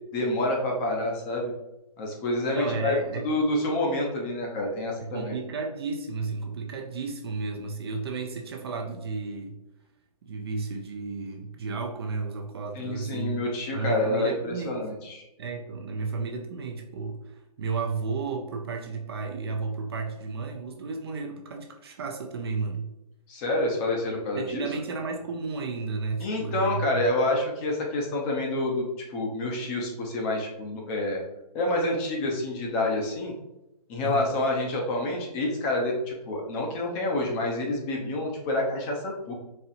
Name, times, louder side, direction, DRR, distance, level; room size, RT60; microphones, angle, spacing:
voice 1, 0.1-1.5 2.0-3.0 3.2-5.4 12.7-15.2 23.3-24.7 26.2-31.2 31.5-33.3 33.9-39.3, left 2 dB, 20° left, -1 dB, 0.6 m, -28 dB
voice 2, 2.5-3.3 5.0-9.6 10.2-13.4 13.7-14.8 15.4-22.9 24.4-27.0 34.0-34.3, right 4 dB, 40° right, 3 dB, 0.4 m, -33 dB
4.2 x 2.7 x 2.5 m, 0.93 s
hypercardioid pair, 145°, 20 cm